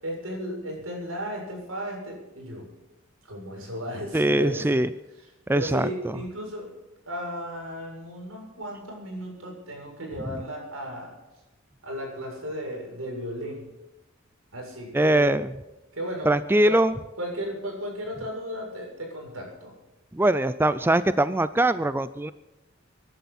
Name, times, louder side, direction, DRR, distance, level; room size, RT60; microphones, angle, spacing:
voice 1, 0.0-2.7 3.2-4.8 5.2-5.3 5.5-6.7 7.1-11.2 11.8-13.7 14.5-15.4 15.9-16.3 16.6-16.8 17.2-19.7, equal, 85° right, 1 dB, 7.2 m, -35 dB
voice 2, 4.1-4.9 5.5-5.9 14.9-15.5 16.3-16.9 20.1-22.3, right 1 dB, 10° right, 14 dB, 0.4 m, -22 dB
24.5 x 11.5 x 4.3 m, 1.0 s
head